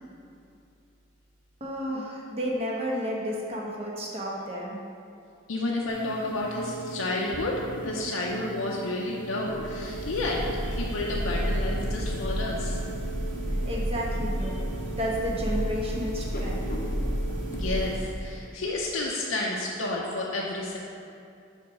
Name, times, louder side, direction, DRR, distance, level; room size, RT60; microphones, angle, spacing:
voice 1, 1.6-4.8 13.6-14.6 14.9-16.7, equal, 30° right, -3 dB, 1.0 m, -31 dB
voice 2, 5.5-12.8 17.5-20.8, left 2 dB, 85° left, -3 dB, 0.7 m, -31 dB
sound 1, 5.9-17.6, right 2 dB, 45° left, 0.7 m, -39 dB
sound 2, 9.4-18.6, equal, 60° right, 0.7 m, -31 dB
5.3 x 5.0 x 5.7 m, 2.5 s
head